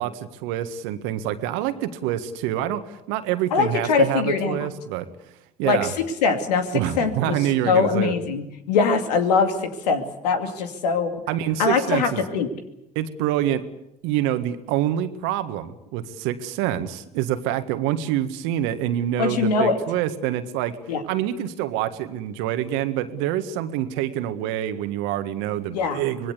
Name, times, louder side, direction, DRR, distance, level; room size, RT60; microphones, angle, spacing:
voice 1, 0.0-5.1 5.6-5.9 6.7-8.1 11.3-12.2 13.0-13.6 14.0-20.8 21.1-26.3, right 11 dB, 75° right, 10 dB, 1.8 m, -26 dB
voice 2, 3.5-4.7 5.6-7.4 7.6-11.2 11.6-12.6 19.2-19.8 20.9-21.0 25.7-26.0, left 5 dB, 85° left, 6 dB, 2.5 m, -22 dB
25.5 x 20.5 x 8.3 m, 0.84 s
hypercardioid pair, 60°, 20 cm